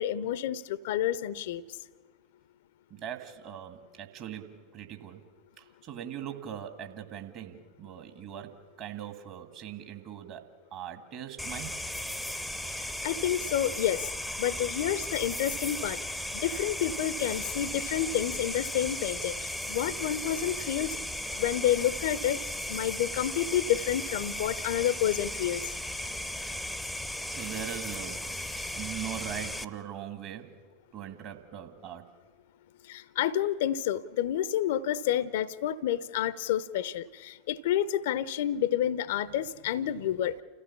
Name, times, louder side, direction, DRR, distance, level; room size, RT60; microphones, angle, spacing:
voice 1, 0.0-1.6 12.8-14.1 14.4-16.0 16.3-21.0 21.4-22.4 22.7-25.6 32.9-40.3, left 11 dB, 55° left, 18 dB, 0.7 m, -29 dB
voice 2, 2.9-5.2 5.6-10.5 10.7-11.8 12.9-13.1 21.2-21.4 27.3-28.3 28.8-30.5 30.9-32.1, right 10 dB, 40° right, 6 dB, 2.1 m, -41 dB
sound 1, 11.4-29.6, left 1 dB, ahead, 0.8 m, -36 dB
29.5 x 15.0 x 7.2 m, 1.5 s
figure-of-eight pair, 85°, 0 cm